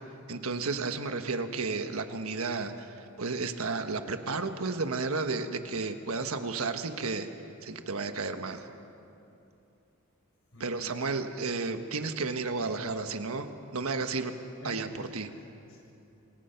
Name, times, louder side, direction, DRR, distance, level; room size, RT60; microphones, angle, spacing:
voice 1, 0.3-7.3 7.6-8.7 10.6-14.3 14.6-15.3, right 3 dB, 75° right, 7 dB, 1.4 m, -32 dB
voice 2, 10.5-10.9 14.6-15.9, left 1 dB, 70° left, 1 dB, 5.2 m, -49 dB
27.0 x 24.0 x 5.9 m, 2.7 s
head